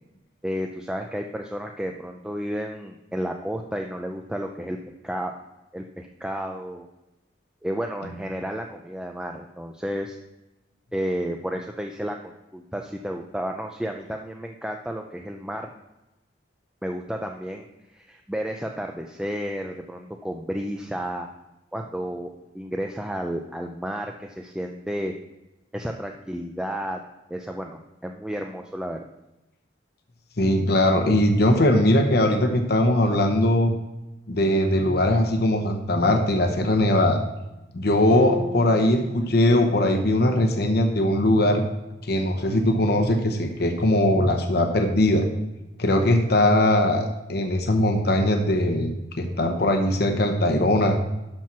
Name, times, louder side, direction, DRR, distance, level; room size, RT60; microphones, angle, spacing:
voice 1, 0.4-4.8 5.0-5.3 5.7-6.9 7.6-10.2 10.9-15.7 16.8-17.7 17.9-21.3 21.7-25.1 25.7-27.0 27.3-29.0, equal, 5° right, 3 dB, 0.5 m, -32 dB
voice 2, 30.4-33.7 34.3-37.2 37.7-41.6 42.0-45.2 45.8-51.0, left 1 dB, 60° left, 4 dB, 1.0 m, -20 dB
sound 1, 38.1-42.2, left 2 dB, 30° right, 1.4 m, -36 dB
11.5 x 4.5 x 6.0 m, 0.99 s
head